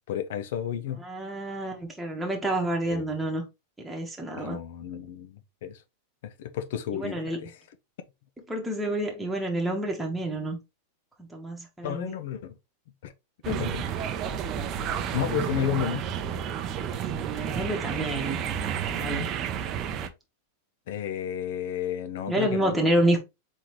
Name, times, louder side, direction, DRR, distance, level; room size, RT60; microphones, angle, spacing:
voice 1, 0.1-1.0 2.9-3.0 4.4-5.8 6.4-7.6 11.8-12.5 13.0-13.1 13.5-13.9 15.1-16.1 20.9-22.7, left 10 dB, 70° left, 0.8 m, -32 dB
voice 2, 1.0-3.4 3.8-4.6 6.9-7.4 8.5-10.6 11.2-12.2 15.3-15.4 17.1-19.3 22.3-23.2, right 1 dB, 5° right, 1.3 m, -29 dB
sound 1, 13.4-20.1, right 8 dB, 30° right, 0.6 m, -31 dB
4.4 x 3.8 x 3.1 m
supercardioid pair, 150°, 0 cm